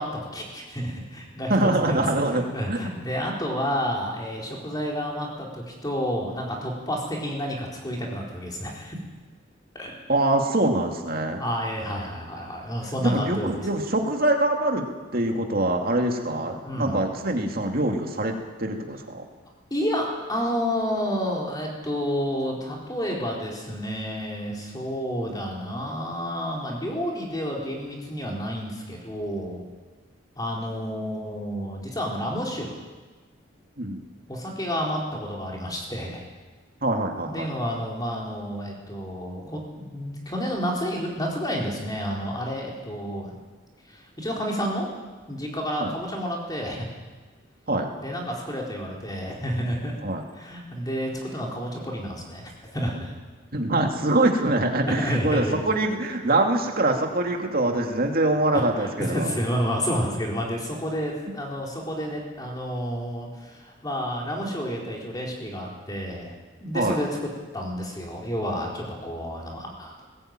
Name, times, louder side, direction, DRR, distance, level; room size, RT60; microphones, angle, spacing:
voice 1, 0.0-2.0 2.3-9.0 9.7-9.9 11.4-13.6 16.6-17.0 19.7-29.6 30.4-32.7 34.3-36.2 37.2-43.3 43.9-44.9 45.3-46.9 47.9-49.9 50.3-52.4 52.7-53.1 54.9-55.6 58.5-67.1 67.5-70.0, equal, 20° left, -2 dB, 4.3 m, -30 dB
voice 2, 1.5-2.8 10.1-11.4 13.0-14.9 15.1-19.2 33.8-34.0 36.8-37.5 45.8-45.9 47.7-47.9 50.0-50.2 53.5-59.3 66.7-67.0, right 2 dB, 45° right, 2 dB, 2.6 m, -24 dB
20.0 x 16.5 x 9.1 m, 1.3 s
head